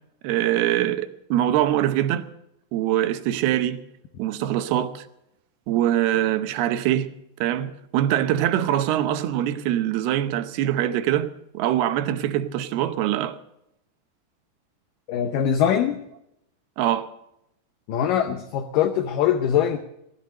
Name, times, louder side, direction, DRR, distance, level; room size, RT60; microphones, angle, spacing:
voice 1, 0.2-2.2 2.7-3.8 4.2-5.0 5.7-7.1 7.4-11.3 11.5-13.4 16.8-17.1, right 12 dB, 75° right, 2.7 m, -23 dB
voice 2, 15.1-16.0 17.9-19.8, left 9 dB, 75° left, 2.0 m, -22 dB
17.0 x 12.0 x 6.6 m
omnidirectional pair, 4.8 m